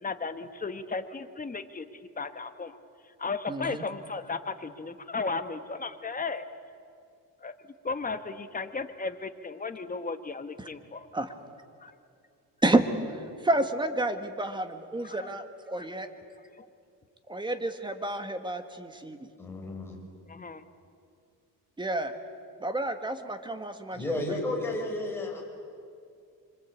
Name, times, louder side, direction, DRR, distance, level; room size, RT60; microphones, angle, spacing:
voice 1, 0.0-1.9 2.2-2.8 3.2-6.5 7.4-7.5 7.8-11.1 11.8-11.9 15.0-15.3 15.8-15.9 16.6-16.7 20.3-20.6, left 4 dB, 20° left, 9 dB, 1.4 m, -35 dB
voice 2, 3.5-3.8 10.6-10.7 11.1-11.3 12.6-12.9 13.1-16.1 17.3-19.2 21.8-22.1 22.6-24.2, right 2 dB, 10° right, 8 dB, 1.7 m, -30 dB
voice 3, 19.4-20.0 23.9-25.5, left 2 dB, 5° left, -1 dB, 6.1 m, -32 dB
26.0 x 25.5 x 8.5 m, 2.4 s
cardioid pair, 130°, 37 cm